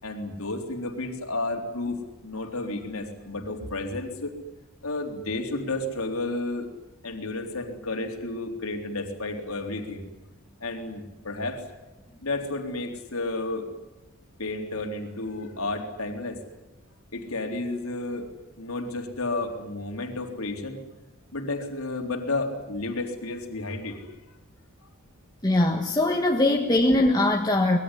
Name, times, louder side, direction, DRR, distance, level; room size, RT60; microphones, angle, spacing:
voice 1, 0.0-4.4 4.8-6.7 7.0-10.1 10.6-11.6 12.2-13.7 14.4-16.4 17.1-20.8 21.3-24.1 24.8-24.9, left 2 dB, 75° left, 4 dB, 3.8 m, -32 dB
voice 2, 25.4-27.8, left 1 dB, 20° left, 2 dB, 1.6 m, -21 dB
25.0 x 21.0 x 10.0 m, 0.99 s
head